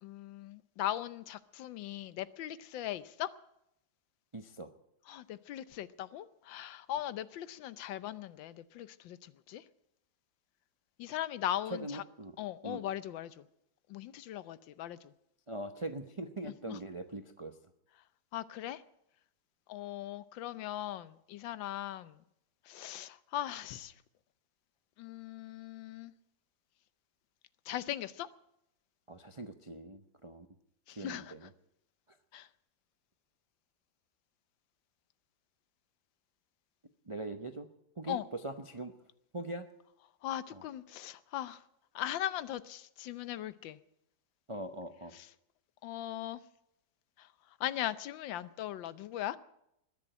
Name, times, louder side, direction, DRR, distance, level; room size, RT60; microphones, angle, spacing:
voice 1, 0.0-3.3 5.1-9.6 11.0-12.0 12.4-13.4 13.9-15.1 16.7-16.8 18.3-18.8 19.7-22.2 22.6-23.9 25.0-26.1 27.6-28.3 30.9-31.3 32.3-32.5 38.1-38.2 40.2-41.6 41.9-43.8 45.1-45.3 45.8-46.4 47.2-47.3 47.6-49.4, left 12 dB, 90° left, 1.5 m, -39 dB
voice 2, 4.3-4.7 11.7-12.4 12.6-12.8 15.5-17.6 29.1-30.5 31.0-31.5 32.1-32.2 37.1-37.7 38.0-38.9 39.3-39.7 40.5-40.6 44.5-45.1, right 2 dB, 50° right, 0.3 m, -41 dB
21.0 x 7.2 x 8.9 m
omnidirectional pair, 2.0 m